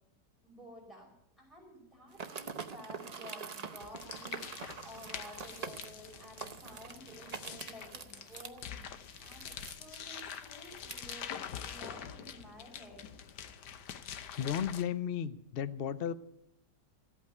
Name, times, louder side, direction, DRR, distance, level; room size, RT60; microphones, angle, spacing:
voice 1, 0.4-8.8 9.2-11.3 11.6-13.1, equal, ahead, -2 dB, 5.5 m, -52 dB
sound 1, 2.1-11.2, right 5 dB, 45° right, 0.5 m, -45 dB
sound 2, 3.8-14.8, left 8 dB, 75° left, 1.4 m, -45 dB
voice 2, 14.4-16.1, left 9 dB, 60° left, 13 dB, 0.6 m, -34 dB
15.0 x 8.6 x 9.3 m, 0.80 s
omnidirectional pair, 1.8 m